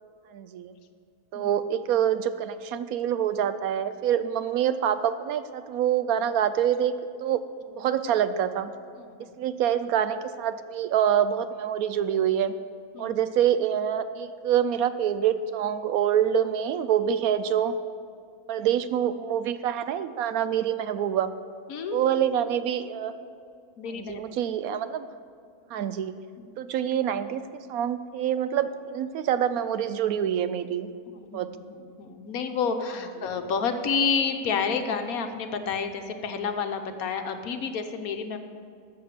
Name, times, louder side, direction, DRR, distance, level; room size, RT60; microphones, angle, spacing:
voice 1, 0.3-0.7 1.3-6.9 7.2-7.4 7.7-8.7 9.4-12.6 13.0-17.8 18.5-21.4 21.9-23.1 23.9-25.1 25.7-26.2 26.6-30.9 31.3-31.5, right 9 dB, 75° right, 12 dB, 1.0 m, -26 dB
voice 2, 9.0-9.3 12.9-13.2 21.7-22.2 23.8-24.2 26.4-26.5 31.2-31.5 32.0-38.4, left 5 dB, 70° left, 7 dB, 1.3 m, -29 dB
13.0 x 6.8 x 6.6 m, 2.3 s
omnidirectional pair, 1.6 m